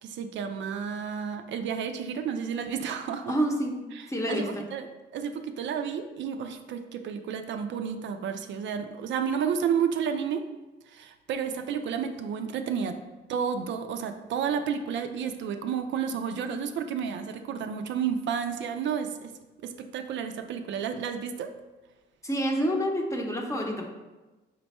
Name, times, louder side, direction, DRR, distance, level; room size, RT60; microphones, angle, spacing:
voice 1, 0.0-3.3 3.9-10.5 10.9-13.0 13.3-19.3 19.6-21.5, right 7 dB, 70° right, 7 dB, 0.4 m, -31 dB
voice 2, 3.3-3.8 4.1-4.6 22.2-23.9, equal, 15° left, 1 dB, 0.7 m, -28 dB
5.1 x 2.2 x 4.1 m, 1.2 s
cardioid pair, 90°, 20 cm